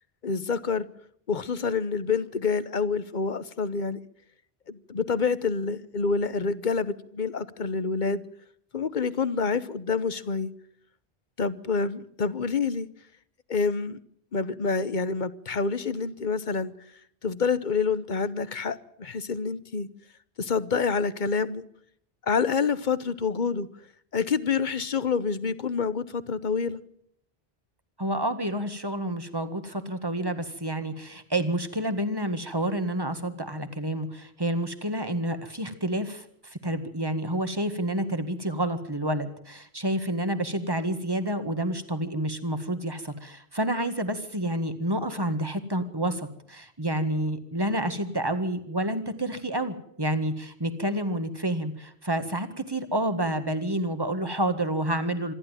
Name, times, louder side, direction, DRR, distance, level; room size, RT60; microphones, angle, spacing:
voice 1, 0.2-0.9 1.3-4.0 4.7-8.2 8.7-10.5 11.4-12.9 13.5-14.0 14.3-16.7 17.2-19.9 20.4-21.6 22.3-23.7 24.1-26.8, left 5 dB, 50° left, 1.1 m, -27 dB
voice 2, 28.0-55.3, right 1 dB, 20° right, 1.8 m, -29 dB
26.5 x 11.5 x 9.1 m
omnidirectional pair, 1.1 m